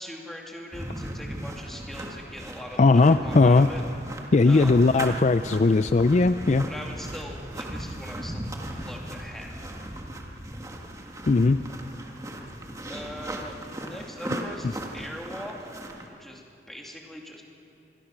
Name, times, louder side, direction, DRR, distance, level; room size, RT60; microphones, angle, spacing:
voice 1, 0.0-3.8 4.5-4.7 6.7-9.7 12.9-15.7 16.1-16.4 16.7-17.4, equal, ahead, -1 dB, 2.6 m, -41 dB
sound 1, 0.7-16.1, right 1 dB, 20° right, 1.7 m, -37 dB
voice 2, 2.8-3.7 4.3-6.7 11.3-11.6, left 3 dB, 40° left, 11 dB, 0.4 m, -19 dB
26.0 x 21.5 x 6.0 m, 2.6 s
head